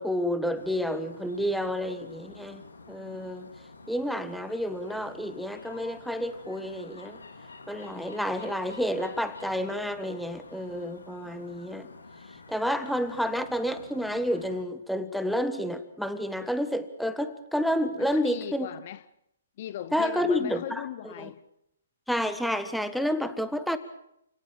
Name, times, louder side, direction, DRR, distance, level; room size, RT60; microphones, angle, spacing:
voice 1, 0.0-3.5 3.9-7.2 7.7-11.9 12.5-18.7 19.9-20.8 21.2-21.3 22.1-23.8, equal, ahead, 1.5 m, -30 dB
sound 1, 0.5-14.6, left 3 dB, 85° left, 3.0 m, -49 dB
voice 2, 18.0-19.0 19.6-21.4, left 11 dB, 45° left, 0.8 m, -38 dB
29.0 x 18.0 x 7.4 m
hypercardioid pair, 135°, 0 cm